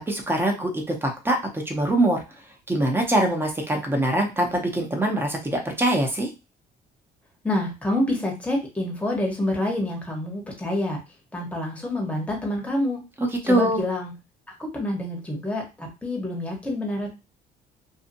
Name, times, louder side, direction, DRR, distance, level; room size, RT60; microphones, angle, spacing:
voice 1, 0.1-2.2 2.7-6.3 13.2-13.8, right 1 dB, 15° right, 3 dB, 0.8 m, -23 dB
voice 2, 7.4-11.0 11.3-13.0 13.5-14.1 14.7-17.1, left 1 dB, 10° left, 0 dB, 1.0 m, -27 dB
2.6 x 2.4 x 2.6 m, 0.27 s
cardioid pair, 110°, 17 cm